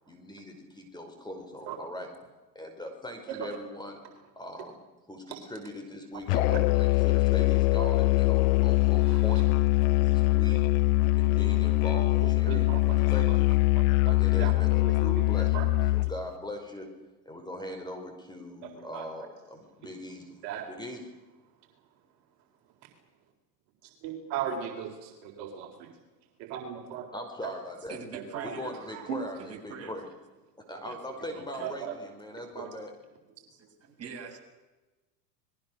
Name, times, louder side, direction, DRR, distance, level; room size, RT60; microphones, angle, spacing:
voice 1, 0.1-2.1 2.5-4.0 4.3-4.8 5.1-9.5 10.0-10.6 11.2-13.6 14.0-15.6 15.9-16.9 17.2-20.4 20.7-21.1 27.1-28.0 28.4-30.1 30.6-32.9, left 1 dB, 10° left, 4 dB, 5.0 m, -40 dB
Musical instrument, 6.3-16.2, left 19 dB, 60° left, 0.9 m, -23 dB
voice 2, 8.7-9.2 12.2-13.4 13.7-14.5 14.8-15.3 15.5-15.7 18.9-19.1 20.4-20.7 24.0-24.9 25.4-25.9 26.4-27.1 28.1-28.5 28.9-29.2 31.6-32.0 32.5-32.7, right 9 dB, 55° right, 3 dB, 4.1 m, -37 dB
voice 3, 27.9-28.7 29.4-29.9 30.8-31.0 31.3-31.7 33.5-34.4, right 5 dB, 30° right, 1 dB, 7.6 m, -44 dB
29.5 x 21.5 x 6.5 m, 1.2 s
hypercardioid pair, 110°, 50 cm